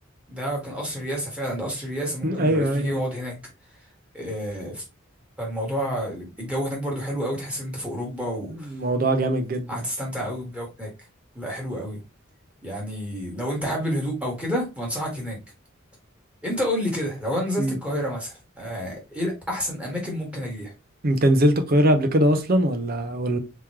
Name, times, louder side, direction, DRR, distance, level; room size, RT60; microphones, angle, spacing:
voice 1, 0.3-3.3 4.1-4.8 5.4-8.7 9.7-10.9 11.3-12.0 12.6-15.4 16.4-20.7, equal, 5° right, 1.5 m, -29 dB
voice 2, 2.2-3.0 8.7-9.8 17.6-17.8 21.0-23.4, right 1 dB, 45° right, 0.7 m, -21 dB
3.6 x 3.1 x 3.0 m
head